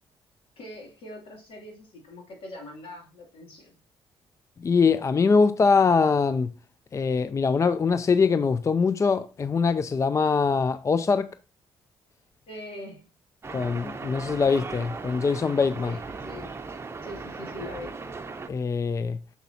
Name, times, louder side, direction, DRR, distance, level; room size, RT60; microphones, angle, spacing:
voice 1, 0.6-3.7 12.5-13.0 15.8-16.5 17.0-17.9, left 1 dB, 70° left, 2.7 m, -42 dB
voice 2, 4.6-6.5 6.9-11.3 13.5-16.0 18.5-19.2, left 5 dB, 30° left, 0.4 m, -23 dB
sound 1, 13.4-18.5, right 4 dB, 25° right, 0.8 m, -38 dB
6.9 x 6.1 x 2.8 m
supercardioid pair, 65°, 10 cm